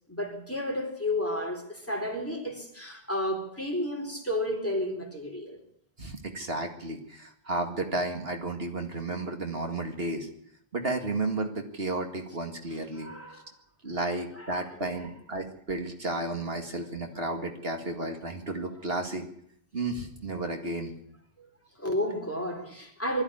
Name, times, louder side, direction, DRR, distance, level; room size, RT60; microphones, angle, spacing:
voice 1, 0.1-5.6 12.9-13.4 14.4-15.1 21.4-21.5 21.8-23.2, left 1 dB, 10° left, 3.8 m, -32 dB
voice 2, 6.0-10.3 10.7-13.1 13.8-19.3 19.7-21.0, right 2 dB, 65° right, 2.3 m, -32 dB
20.5 x 14.0 x 9.8 m
omnidirectional pair, 1.1 m